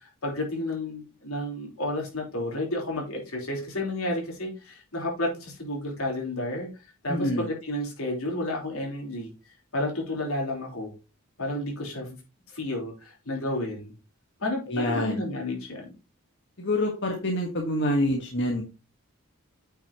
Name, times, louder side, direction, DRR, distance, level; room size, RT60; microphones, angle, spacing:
voice 1, 0.0-6.7 7.0-9.3 9.7-10.9 11.4-12.2 12.5-13.9 14.4-15.9, left 1 dB, 80° left, 0 dB, 3.7 m, -31 dB
voice 2, 7.1-7.5 14.7-15.2 16.6-18.6, left 1 dB, 55° left, 2 dB, 1.5 m, -26 dB
8.9 x 6.4 x 3.0 m, 0.30 s
head